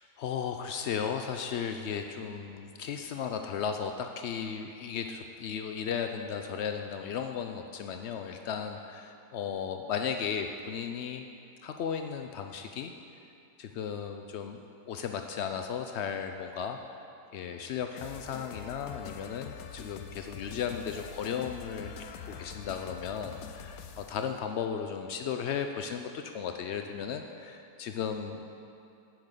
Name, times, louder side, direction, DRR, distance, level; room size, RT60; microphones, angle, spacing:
voice 1, 0.2-11.2 11.6-12.9 13.6-16.8 17.3-28.4, left 7 dB, 90° left, 5 dB, 0.5 m, -35 dB
sound 1, 18.0-24.3, left 6 dB, 70° left, 1.0 m, -45 dB
8.6 x 6.2 x 8.1 m, 2.6 s
omnidirectional pair, 1.7 m